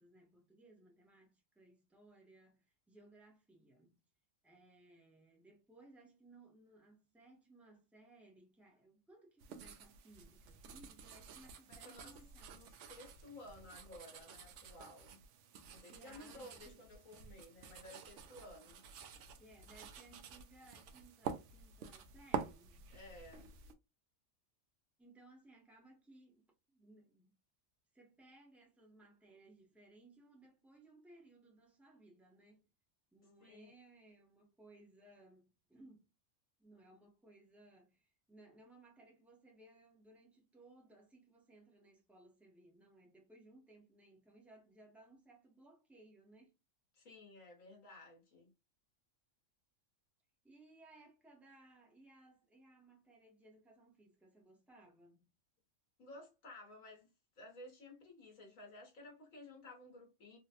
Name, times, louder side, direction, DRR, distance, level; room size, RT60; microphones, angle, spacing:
voice 1, 0.0-4.0 4.4-12.5 15.9-16.9 19.4-22.9 25.0-27.4 27.9-32.7 33.1-36.1 36.6-46.6 50.4-55.2, right 2 dB, ahead, 0.7 m, -62 dB
sound 1, 9.4-23.7, right 7 dB, 70° right, 0.9 m, -49 dB
voice 2, 11.7-12.2 12.5-15.2 15.7-18.8 22.9-23.5 33.4-33.7 46.9-48.5 56.0-57.1 57.4-60.4, left 2 dB, 75° left, 1.6 m, -55 dB
3.7 x 2.2 x 2.8 m
omnidirectional pair, 1.4 m